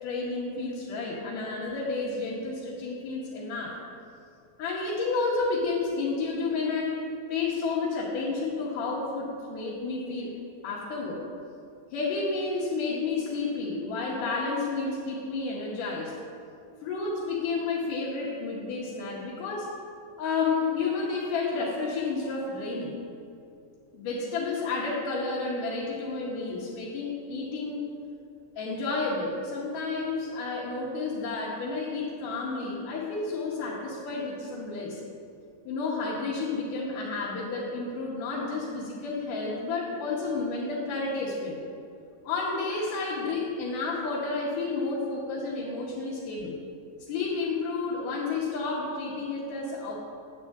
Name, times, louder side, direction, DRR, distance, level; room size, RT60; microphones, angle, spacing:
voice 1, 0.0-3.8 4.6-7.0 7.3-10.3 10.6-11.2 11.9-16.2 16.8-19.8 20.2-23.0 23.9-27.9 28.6-35.0 35.7-41.6 42.2-46.6 47.1-50.0, left 3 dB, 90° left, -6 dB, 2.7 m, -31 dB
9.5 x 8.3 x 3.5 m, 2.5 s
omnidirectional pair, 3.6 m